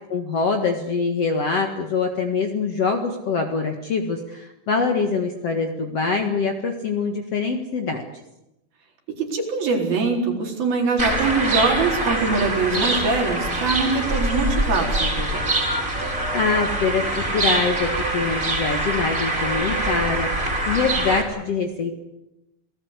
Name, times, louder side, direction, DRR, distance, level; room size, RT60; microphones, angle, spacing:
voice 1, 0.1-8.0 16.3-20.3 20.7-21.9, left 4 dB, 50° left, 4 dB, 2.4 m, -24 dB
voice 2, 9.2-15.5, right 4 dB, 75° right, 1 dB, 6.1 m, -23 dB
sound 1, 11.0-21.2, right 1 dB, 20° right, 4.6 m, -24 dB
28.0 x 19.0 x 8.2 m, 0.90 s
omnidirectional pair, 4.3 m